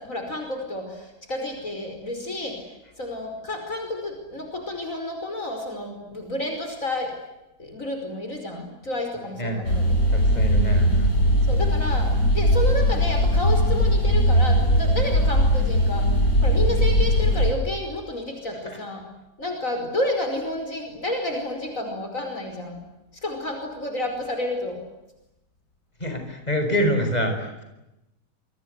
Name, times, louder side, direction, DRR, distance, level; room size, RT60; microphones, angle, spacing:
voice 1, 0.0-2.7 3.0-7.2 7.6-10.1 10.7-10.9 11.5-16.2 16.4-19.0 19.4-22.8 23.2-24.8, left 1 dB, 50° left, 4 dB, 5.7 m, -30 dB
sound 1, 9.6-17.5, equal, 85° left, 8.1 m, -20 dB
voice 2, 10.1-11.1 18.6-18.8 26.0-27.6, equal, 25° left, 5 dB, 6.6 m, -26 dB
28.5 x 25.5 x 8.3 m, 0.92 s
omnidirectional pair, 1.7 m